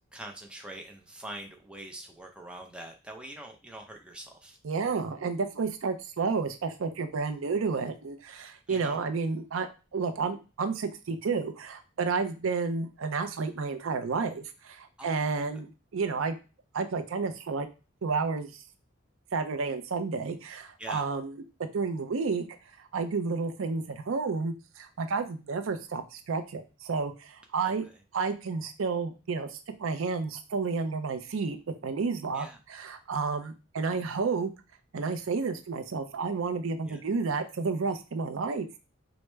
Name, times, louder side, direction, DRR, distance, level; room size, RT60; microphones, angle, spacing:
voice 1, 0.1-4.6 8.7-9.0 15.0-15.4 20.8-21.0 27.6-27.7 32.3-32.6 36.8-37.0, right 1 dB, 5° right, 1 dB, 0.5 m, -44 dB
voice 2, 4.6-16.4 16.7-17.7 18.0-18.5 19.3-21.3 21.6-22.5 22.8-27.9 28.1-34.5 34.9-38.8, right 4 dB, 90° right, 7 dB, 0.5 m, -31 dB
4.6 x 2.0 x 3.2 m, 0.31 s
head